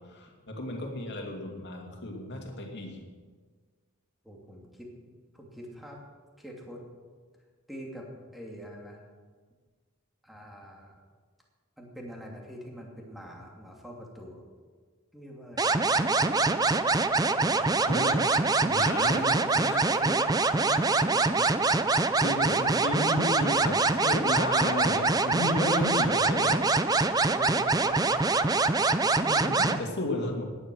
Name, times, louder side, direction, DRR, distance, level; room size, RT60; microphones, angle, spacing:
voice 1, 0.1-3.0 17.9-19.8 22.2-26.7 29.2-30.5, left 2 dB, 50° left, 1 dB, 2.7 m, -33 dB
voice 2, 4.2-4.9 5.3-6.0 6.4-6.8 7.7-9.0 10.2-11.0 11.8-14.4 15.1-16.5 17.3-17.7 19.0-20.3 20.6-21.3 27.3-28.1, equal, ahead, -1 dB, 2.6 m, -44 dB
sound 1, 15.6-29.8, right 3 dB, 15° right, 0.5 m, -24 dB
17.0 x 11.0 x 6.3 m, 1.5 s
head